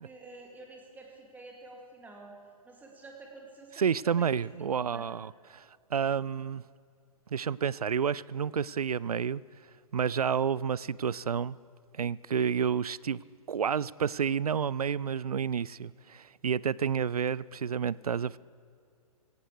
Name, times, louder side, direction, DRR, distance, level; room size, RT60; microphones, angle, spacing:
voice 1, 0.0-2.3 2.6-4.3 4.7-5.1, right 2 dB, 10° right, 2.2 m, -49 dB
voice 2, 3.8-6.6 7.3-9.4 9.9-11.6 11.9-13.2 13.5-18.4, right 7 dB, 80° right, 0.4 m, -30 dB
17.5 x 17.0 x 4.9 m
figure-of-eight pair, 115°, 19 cm